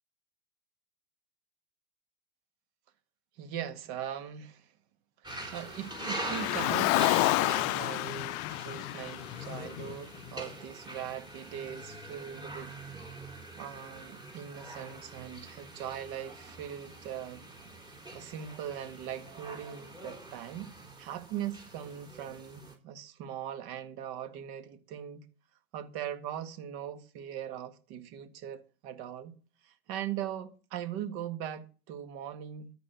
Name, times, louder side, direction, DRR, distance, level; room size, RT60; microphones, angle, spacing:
voice 1, 3.4-4.6 5.5-12.7 13.6-17.4 18.1-20.7 21.0-25.3 25.7-29.4 29.6-32.7, right 10 dB, 60° right, 1.8 m, -40 dB
sound 1, 5.2-22.7, right 2 dB, 15° right, 3.5 m, -44 dB
Car, 5.9-10.3, left 22 dB, 50° left, 0.5 m, -30 dB
13.5 x 5.3 x 7.0 m
hypercardioid pair, 100°, 30 cm